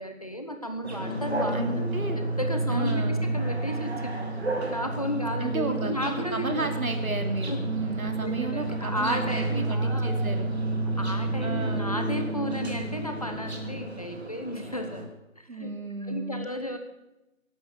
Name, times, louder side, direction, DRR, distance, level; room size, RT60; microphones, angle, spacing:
voice 1, 0.0-1.9 2.2-4.3 4.7-6.7 7.5-7.6 8.2-10.1 11.0-15.0 15.4-15.7 16.1-16.8, equal, 25° left, 6 dB, 1.0 m, -33 dB
sound 1, 0.8-15.0, right 2 dB, 50° right, 2.6 m, -30 dB
voice 2, 1.5-2.2 2.7-3.3 5.4-5.9 6.3-10.5 11.4-12.0 15.5-16.5, right 3 dB, 80° right, 6 dB, 2.8 m, -33 dB
15.0 x 11.5 x 6.8 m, 0.95 s
figure-of-eight pair, 170°, 42 cm